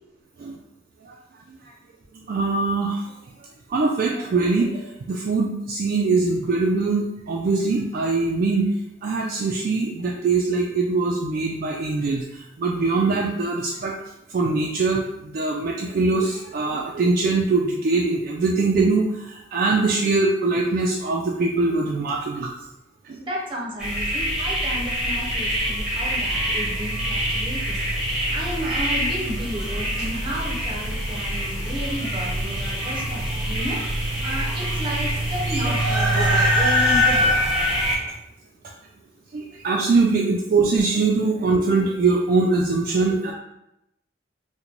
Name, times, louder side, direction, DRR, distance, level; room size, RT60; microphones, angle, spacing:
voice 1, 2.1-3.0 3.7-8.7 9.0-14.0 14.3-22.5 23.1-23.2 39.3-43.3, right 3 dB, 50° right, -1 dB, 0.3 m, -22 dB
voice 2, 23.2-27.8 28.3-37.4, equal, 25° right, -3 dB, 0.7 m, -32 dB
sound 1, 23.8-38.0, equal, 5° right, 0.9 m, -24 dB
3.0 x 2.1 x 3.8 m, 0.86 s
head